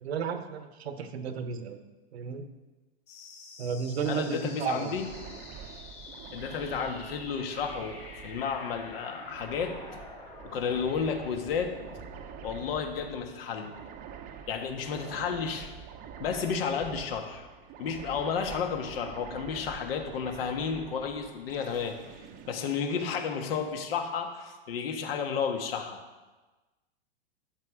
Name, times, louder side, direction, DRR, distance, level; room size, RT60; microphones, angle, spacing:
voice 1, 0.0-1.8 2.1-2.4 3.6-4.9, right 6 dB, 80° right, 8 dB, 1.1 m, -33 dB
sound 1, 3.1-14.1, left 3 dB, 20° left, 1.8 m, -49 dB
voice 2, 4.1-5.1 6.3-9.8 10.4-11.7 12.4-13.7 14.5-15.7 16.2-17.5 17.8-22.0 22.5-26.0, left 6 dB, 65° left, 5 dB, 1.5 m, -32 dB
sound 2, 4.8-23.6, right 8 dB, 25° right, 0.7 m, -46 dB
11.5 x 8.0 x 3.7 m, 1.2 s
hypercardioid pair, 140°, 31 cm